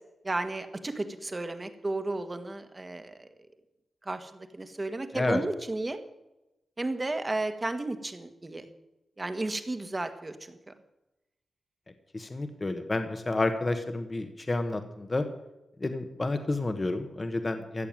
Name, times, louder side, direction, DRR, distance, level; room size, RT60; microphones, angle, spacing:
voice 1, 0.2-3.3 4.0-6.0 6.8-8.7 9.2-10.6, right 2 dB, 30° right, 8 dB, 1.5 m, -33 dB
voice 2, 12.1-15.3 15.8-17.9, left 2 dB, 30° left, 7 dB, 1.3 m, -30 dB
14.5 x 6.9 x 9.0 m, 0.97 s
cardioid pair, 70°, 0 cm